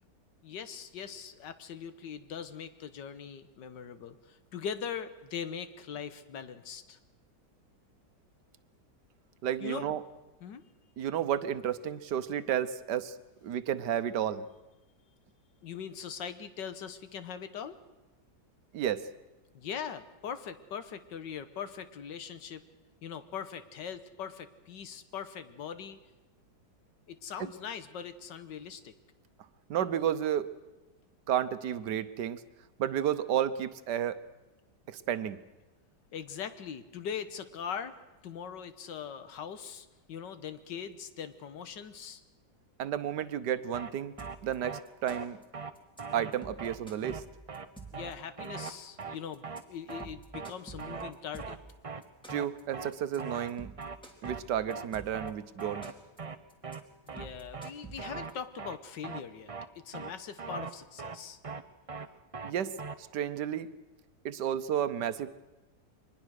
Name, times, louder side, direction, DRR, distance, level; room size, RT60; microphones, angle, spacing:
voice 1, 0.4-7.0 9.6-9.9 10.4-10.7 15.6-17.8 19.5-22.6 23.0-26.0 27.1-28.9 36.1-42.2 47.9-51.6 57.1-59.5 59.8-61.4, left 7 dB, 85° left, 11 dB, 1.8 m, -41 dB
voice 2, 9.4-10.0 11.0-13.2 13.4-14.5 18.7-19.1 29.7-30.5 31.3-32.4 32.8-34.2 34.9-35.4 42.8-44.1 44.4-45.4 46.1-47.2 52.3-53.7 54.2-55.8 62.4-63.7 64.2-65.4, right 10 dB, 75° right, 13 dB, 1.5 m, -32 dB
sound 1, 43.7-43.9 44.2-44.4 44.6-44.8 45.1-45.3 45.5-45.7 46.0-46.3 46.6-46.8 47.0-47.2 47.5-47.7 47.9-48.1 48.4-48.7 49.0-49.2 49.4-49.6 49.9-50.1 50.3-50.5 50.8-51.1 51.4-51.6 51.8-52.0 52.3-52.5 52.7-52.9 53.2-53.5 53.8-54.0 54.2-54.4 54.7-54.9 55.1-55.3 55.6-55.9 56.2-56.4 56.6-56.8 57.1-57.3 57.5-57.7 58.0-58.3 58.6-58.8 59.0-59.2 59.5-59.7 59.9-60.1 60.4-60.7 61.0-61.2 61.4-61.6 61.9-62.1 62.3-62.5 62.8-62.9, right 5 dB, 45° right, 0.4 m, -40 dB
sound 2, 44.2-44.5 44.8-45.4 45.7-46.0 46.3-48.1 48.4-49.0 49.3-49.6 49.9-51.7 52.0-52.6 52.9-53.2 53.5-55.3 55.6-56.2 56.5-56.7 57.1-58.3, right 3 dB, 5° left, 2.7 m, -48 dB
23.5 x 20.5 x 6.4 m, 1.1 s
omnidirectional pair, 1.9 m